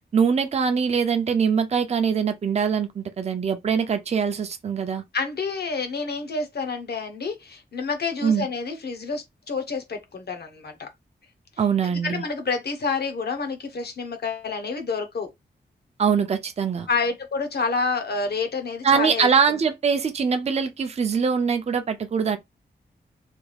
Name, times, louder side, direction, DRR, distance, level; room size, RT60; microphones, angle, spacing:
voice 1, 0.1-5.0 8.2-8.5 11.6-12.2 16.0-16.9 18.8-22.4, right 6 dB, 40° right, 0.4 m, -23 dB
voice 2, 5.1-10.9 11.8-15.3 16.9-19.3, left 4 dB, 65° left, 0.9 m, -28 dB
3.3 x 2.3 x 3.3 m
wide cardioid pair, 175°, 18 cm